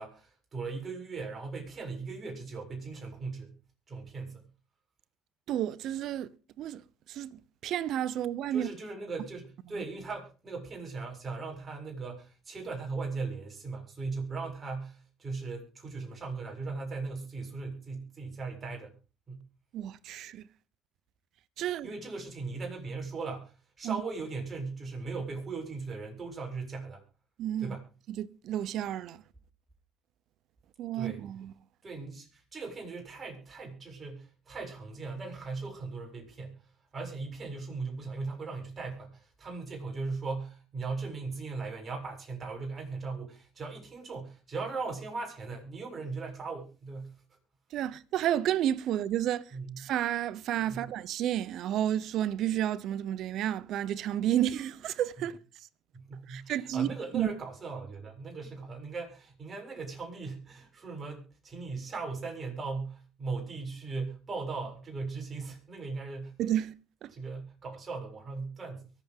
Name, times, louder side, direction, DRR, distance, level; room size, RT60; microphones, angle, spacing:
voice 1, 0.0-3.6 3.9-4.5 8.5-19.0 19.3-19.5 21.8-27.0 27.6-27.9 30.9-31.2 31.8-36.6 36.9-47.2 49.5-49.9 50.7-50.9 55.9-66.4 67.1-68.9, right 4 dB, 30° right, 7.1 m, -38 dB
voice 2, 5.5-6.3 6.6-6.8 7.1-8.7 19.7-20.5 21.6-21.9 23.8-24.0 27.4-27.7 28.2-29.2 30.8-31.5 47.7-49.4 49.8-55.4 56.3-56.9 57.1-57.3 66.4-66.7 67.0-67.1, right 11 dB, 60° right, 0.8 m, -31 dB
23.5 x 8.3 x 3.7 m
supercardioid pair, 80°, 0 cm